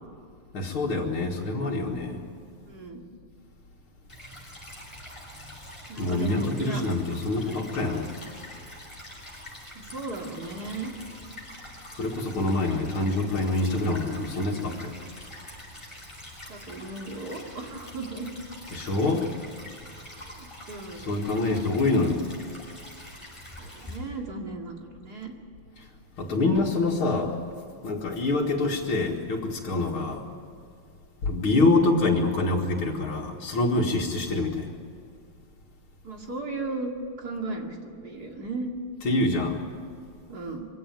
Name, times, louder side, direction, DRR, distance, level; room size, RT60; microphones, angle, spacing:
voice 1, 0.5-2.2 6.0-8.1 11.9-14.9 18.7-19.3 21.1-22.2 26.2-27.4 27.8-30.2 31.2-34.7 39.0-39.6, left 2 dB, 75° left, -3 dB, 2.7 m, -25 dB
voice 2, 2.6-3.0 5.9-6.8 7.4-7.8 9.7-10.9 16.5-18.3 20.2-21.1 23.6-25.3 36.0-36.9 37.2-38.7 40.3-40.7, right 2 dB, 45° right, 1 dB, 2.8 m, -36 dB
Stream / Trickle dribble, 4.1-24.0, left 1 dB, 15° left, 6.1 m, -45 dB
23.5 x 16.5 x 9.2 m, 2.4 s
omnidirectional pair, 2.3 m